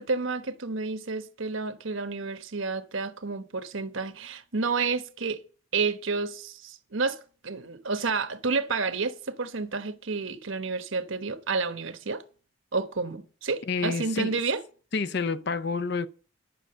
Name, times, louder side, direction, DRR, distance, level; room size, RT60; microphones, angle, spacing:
voice 1, 0.0-5.4 5.7-12.2 12.7-14.6, right 4 dB, 70° right, 1.1 m, -30 dB
voice 2, 13.7-14.4 14.9-16.1, left 4 dB, 50° left, 0.6 m, -29 dB
10.5 x 6.1 x 7.7 m
head